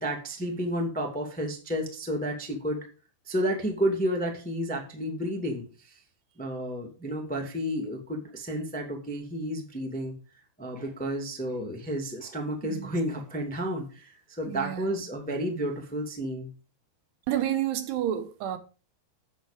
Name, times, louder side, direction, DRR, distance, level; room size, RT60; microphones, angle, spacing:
voice 1, 0.0-2.9 3.2-6.0 6.4-10.2 10.6-16.5, equal, 5° left, 1.1 m, -31 dB
voice 2, 14.5-15.0 17.3-18.6, right 11 dB, 80° right, 3.1 m, -30 dB
9.9 x 8.0 x 5.1 m
omnidirectional pair, 4.8 m